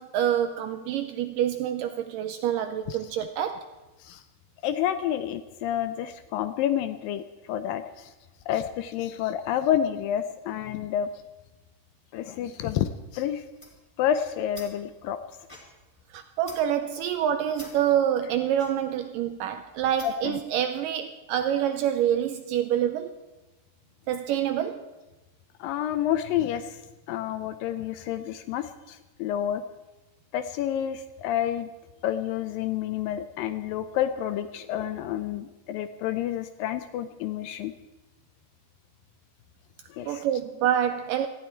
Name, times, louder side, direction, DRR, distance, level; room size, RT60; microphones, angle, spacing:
voice 1, 0.0-3.7 16.1-23.2 24.1-24.9 40.1-41.3, right 10 dB, 80° right, 2.0 m, -27 dB
voice 2, 4.6-8.1 8.5-11.1 12.1-13.4 14.0-15.2 20.0-20.4 25.6-26.8 27.1-29.6 30.3-31.7 32.0-37.7 39.9-40.2, left 10 dB, 80° left, 2.2 m, -29 dB
sound 1, 13.6-20.4, left 1 dB, 10° left, 2.4 m, -50 dB
19.0 x 14.5 x 4.5 m
omnidirectional pair, 4.4 m